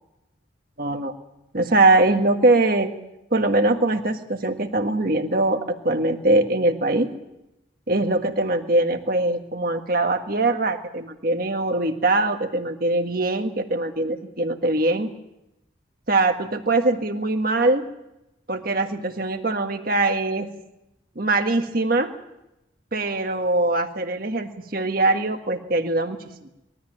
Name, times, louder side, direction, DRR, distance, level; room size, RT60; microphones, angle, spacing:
voice 1, 0.8-1.1 1.5-2.9 3.3-7.1 7.9-15.1 16.1-17.9 18.5-20.5 21.1-22.1 22.9-26.2, right 2 dB, 50° right, 5 dB, 1.6 m, -22 dB
21.5 x 13.5 x 9.0 m, 0.91 s
head